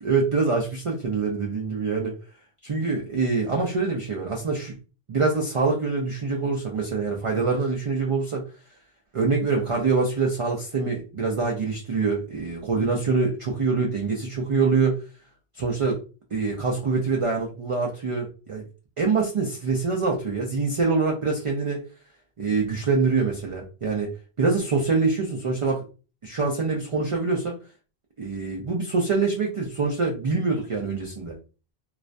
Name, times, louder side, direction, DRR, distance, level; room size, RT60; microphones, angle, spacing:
voice 1, 0.0-2.2 2.6-4.7 5.1-8.4 9.1-15.0 15.5-16.0 16.3-18.6 19.0-21.9 22.4-24.1 24.4-25.8 26.2-27.6 28.2-31.4, right 4 dB, 55° right, 0 dB, 0.3 m, -25 dB
2.4 x 2.1 x 2.4 m, 0.34 s
omnidirectional pair, 1.1 m